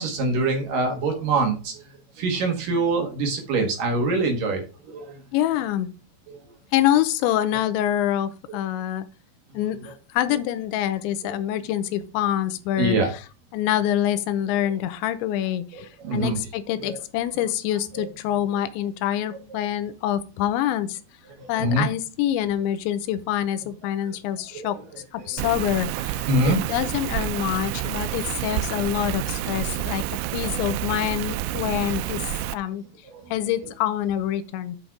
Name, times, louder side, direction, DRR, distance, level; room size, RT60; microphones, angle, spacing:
voice 1, 0.0-1.8 2.2-5.2 6.3-6.4 12.8-13.1 15.7-16.4 16.8-17.0 17.9-18.1 21.4-21.9 26.3-26.6 30.5-30.7 33.1-33.2, right 2 dB, 60° right, 2 dB, 2.8 m, -24 dB
voice 2, 5.3-5.9 6.7-9.1 9.5-13.2 13.5-21.0 21.5-24.8 25.1-30.0 30.3-32.2 32.5-32.8 33.3-34.8, left 12 dB, 90° left, 12 dB, 3.1 m, -26 dB
Rain, 25.4-32.5, right 14 dB, 85° right, 2.9 m, -29 dB
8.8 x 5.5 x 4.7 m, 0.33 s
omnidirectional pair, 5.2 m